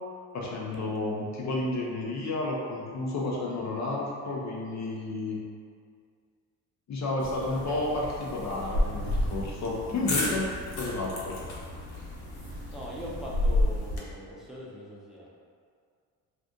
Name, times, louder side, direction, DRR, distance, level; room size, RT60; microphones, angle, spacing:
voice 1, 0.3-5.4 6.9-10.5 10.8-11.4, left 2 dB, 45° left, -3 dB, 0.5 m, -31 dB
sound 1, 7.2-14.0, left 1 dB, 70° left, 0.9 m, -31 dB
voice 2, 7.5-7.9 12.7-15.3, equal, ahead, -6 dB, 0.6 m, -41 dB
Engine starting, 8.9-14.5, right 2 dB, 65° right, 0.5 m, -44 dB
2.6 x 2.4 x 3.5 m, 2.2 s
cardioid pair, 80°, 39 cm